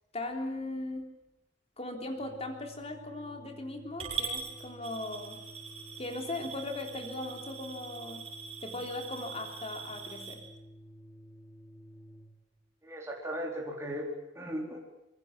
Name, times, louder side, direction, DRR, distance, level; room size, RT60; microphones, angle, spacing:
voice 1, 0.1-1.1 1.8-5.4 6.0-8.3 8.6-10.4, left 2 dB, 35° left, 4 dB, 3.6 m, -38 dB
Organ, 2.1-12.5, equal, ahead, 3.0 m, -52 dB
Coin (dropping) / Glass, 4.0-10.4, right 6 dB, 35° right, 7.5 m, -42 dB
voice 2, 12.8-14.8, equal, 15° right, -1 dB, 4.0 m, -37 dB
25.5 x 23.0 x 7.4 m, 0.89 s
head